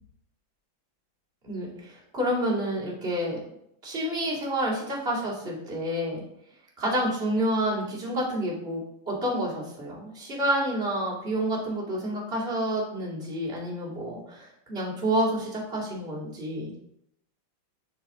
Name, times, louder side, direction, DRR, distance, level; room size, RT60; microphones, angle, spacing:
voice 1, 1.4-3.4 3.8-6.2 6.8-16.7, right 1 dB, 30° right, -5 dB, 2.6 m, -29 dB
7.3 x 6.7 x 3.7 m, 0.76 s
omnidirectional pair, 2.4 m